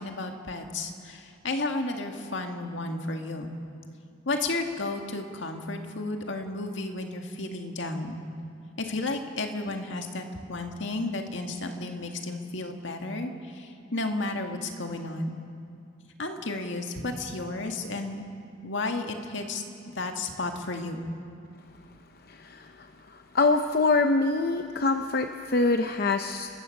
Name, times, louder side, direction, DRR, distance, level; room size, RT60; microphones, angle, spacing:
voice 1, 0.0-3.5 4.3-8.2 8.8-15.4 16.2-18.3 18.6-21.0, left 2 dB, 70° left, 4 dB, 1.9 m, -33 dB
voice 2, 22.3-22.7 23.3-26.5, left 3 dB, 50° left, 7 dB, 0.7 m, -24 dB
29.0 x 15.0 x 6.5 m, 2.5 s
head